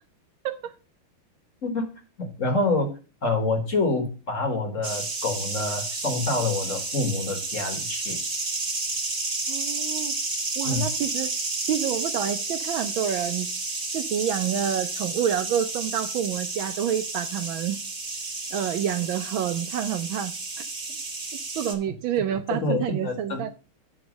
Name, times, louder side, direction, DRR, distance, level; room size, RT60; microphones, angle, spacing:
voice 1, 2.2-2.9 3.2-8.2 10.6-10.9 22.5-23.4, left 2 dB, 40° left, 1.7 m, -27 dB
sound 1, 4.8-21.7, right 3 dB, 30° right, 1.4 m, -31 dB
voice 2, 9.5-10.1 10.6-11.3 11.7-13.5 13.9-17.8 18.5-20.7 21.6-23.5, right 9 dB, 70° right, 1.3 m, -28 dB
8.2 x 5.0 x 6.2 m
omnidirectional pair, 2.4 m